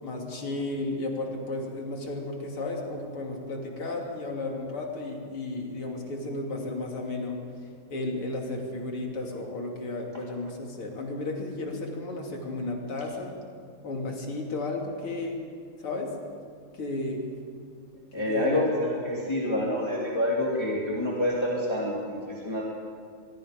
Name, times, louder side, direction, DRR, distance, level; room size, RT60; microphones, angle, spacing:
voice 1, 0.0-7.4 7.9-13.4 13.8-15.4 15.8-16.1 16.7-17.2 18.2-18.6 19.1-19.5, left 2 dB, 85° left, 0 dB, 3.8 m, -33 dB
voice 2, 18.1-22.7, left 1 dB, 10° left, -4 dB, 2.8 m, -27 dB
24.0 x 23.0 x 5.2 m, 2.1 s
omnidirectional pair, 2.3 m